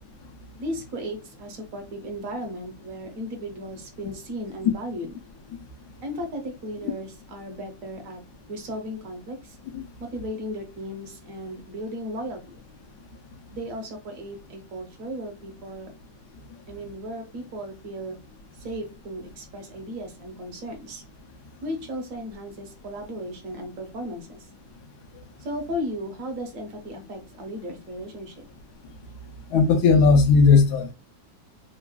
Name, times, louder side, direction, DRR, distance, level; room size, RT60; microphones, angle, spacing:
voice 1, 0.6-5.2 6.0-8.2 8.5-9.6 10.0-12.6 13.5-15.9 16.7-18.2 18.6-21.0 21.6-24.5 25.4-28.4, equal, 55° right, 1.0 m, -35 dB
voice 2, 29.5-30.9, left 4 dB, 70° left, 1.0 m, -17 dB
3.3 x 2.2 x 2.2 m
omnidirectional pair, 2.0 m